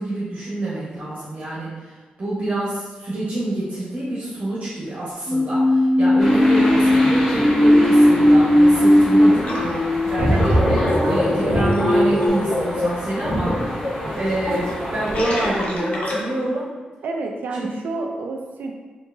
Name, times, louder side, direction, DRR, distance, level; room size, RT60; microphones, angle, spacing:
voice 1, 0.0-10.5 11.1-13.8 14.1-16.7 17.5-17.7, right 1 dB, 45° right, -8 dB, 1.3 m, -27 dB
sound 1, 5.3-12.3, left 1 dB, 20° right, 0.8 m, -17 dB
sound 2, 6.2-15.2, equal, 15° left, 1.0 m, -28 dB
Gurgling, 9.4-9.7 10.0-16.5, equal, 45° left, 0.9 m, -23 dB
voice 2, 10.2-11.7 17.0-18.7, right 3 dB, 80° right, 2 dB, 0.5 m, -29 dB
4.6 x 2.8 x 2.7 m, 1.3 s
wide cardioid pair, 115°, 3 cm